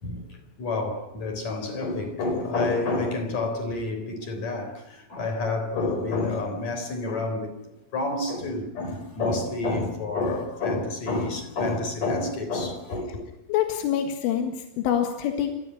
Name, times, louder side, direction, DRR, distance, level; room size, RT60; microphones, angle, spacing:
voice 1, 0.0-7.6 7.9-13.3, left 2 dB, 40° left, 4.4 m, -29 dB
voice 2, 13.5-15.6, left 10 dB, 85° left, 4.2 m, -26 dB
27.5 x 15.0 x 10.0 m
omnidirectional pair, 5.6 m